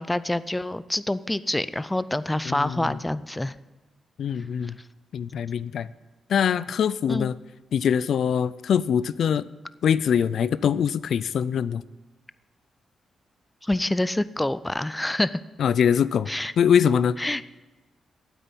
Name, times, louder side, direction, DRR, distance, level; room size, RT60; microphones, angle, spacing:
voice 1, 0.0-3.5 7.1-7.3 13.6-15.4 16.3-16.5 17.2-17.4, left 1 dB, 10° left, 16 dB, 0.4 m, -26 dB
voice 2, 2.5-3.0 4.2-4.8 5.1-5.9 6.3-7.4 7.7-9.5 9.8-11.8 15.6-16.3 16.6-17.2, left 8 dB, 70° left, 17 dB, 0.4 m, -23 dB
9.1 x 8.3 x 9.5 m, 1.2 s
cardioid pair, 95°, 0 cm